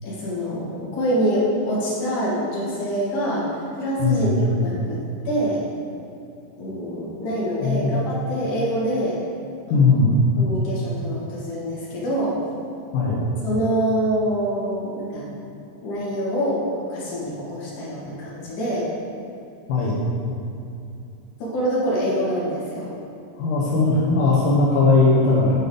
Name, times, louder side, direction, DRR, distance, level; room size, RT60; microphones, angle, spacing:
voice 1, 0.0-5.0 5.2-5.6 6.6-9.2 9.7-9.9 10.4-12.3 13.4-15.3 15.8-18.9 21.4-22.9, equal, 50° left, -7 dB, 2.9 m, -25 dB
voice 2, 4.0-4.3 7.6-7.9 9.7-10.1 12.9-13.2 19.7-20.0 23.4-25.6, left 3 dB, 70° left, -6 dB, 2.0 m, -18 dB
9.8 x 4.5 x 5.1 m, 2.7 s
omnidirectional pair, 5.3 m